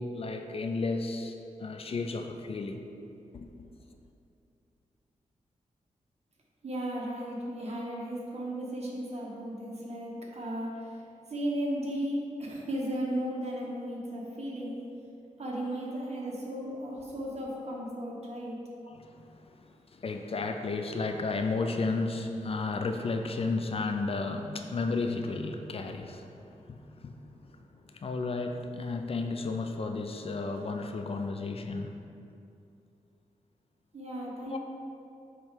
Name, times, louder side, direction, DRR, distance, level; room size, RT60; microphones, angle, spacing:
voice 1, 0.0-1.3 1.6-2.8 3.3-3.5 18.9-26.3 26.7-27.2 27.5-27.6 27.9-32.0 34.5-34.6, left 3 dB, 45° left, 5 dB, 0.4 m, -33 dB
voice 2, 6.6-11.0 11.3-14.8 15.4-18.6 33.9-34.6, right 1 dB, 55° right, -3 dB, 1.3 m, -35 dB
7.4 x 3.2 x 4.9 m, 2.6 s
wide cardioid pair, 105°, 13 cm